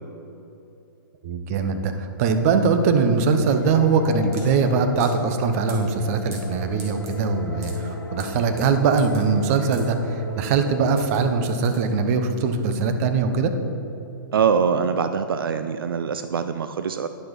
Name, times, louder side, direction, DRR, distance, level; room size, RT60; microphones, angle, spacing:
voice 1, 1.2-13.5, right 5 dB, 40° right, 8 dB, 0.8 m, -21 dB
sound 1, 2.4-12.3, right 3 dB, 25° right, 2.1 m, -47 dB
sound 2, 3.5-11.5, left 2 dB, 85° left, 1.1 m, -35 dB
voice 2, 14.3-17.1, right 6 dB, 80° right, 10 dB, 0.4 m, -23 dB
10.0 x 5.9 x 5.4 m, 2.9 s
hypercardioid pair, 130°, 12 cm